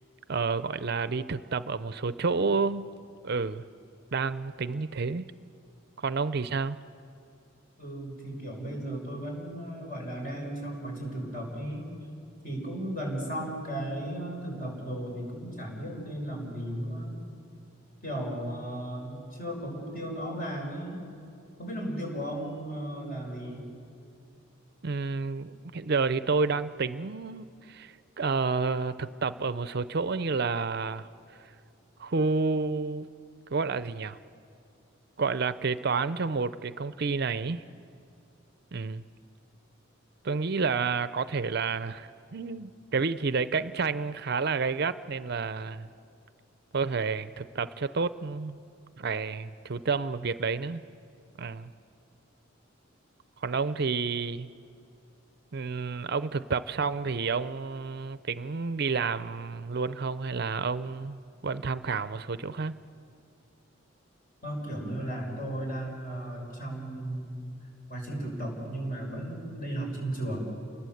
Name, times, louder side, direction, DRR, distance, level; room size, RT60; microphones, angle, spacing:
voice 1, 0.3-2.9 3.2-3.6 4.1-5.3 6.0-6.8 24.8-31.1 32.0-33.1 33.5-34.2 35.2-37.6 38.7-39.0 40.2-45.9 46.7-48.6 49.0-50.8 51.4-51.7 53.4-54.5 55.5-61.2 61.4-62.8, right 4 dB, 50° right, 13 dB, 0.6 m, -30 dB
voice 2, 7.8-11.9 12.4-17.2 18.0-21.0 21.6-23.7 64.4-67.5 67.9-70.4, right 1 dB, 45° left, 0 dB, 6.4 m, -35 dB
29.0 x 20.5 x 7.9 m, 2.5 s
head